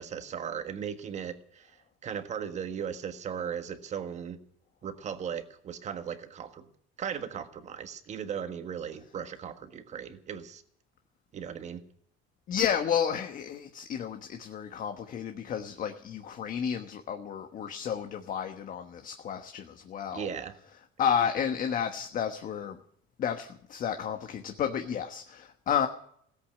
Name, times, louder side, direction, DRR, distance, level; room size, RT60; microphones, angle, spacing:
voice 1, 0.0-1.7 2.0-4.4 4.8-6.7 7.0-10.6 11.3-11.8 20.1-20.5, right 8 dB, 35° right, 8 dB, 1.5 m, -37 dB
voice 2, 12.5-20.3 21.0-22.8 23.2-25.9, left 8 dB, 40° left, 6 dB, 1.2 m, -31 dB
17.5 x 8.3 x 9.9 m, 0.68 s
cardioid pair, 165°, 21 cm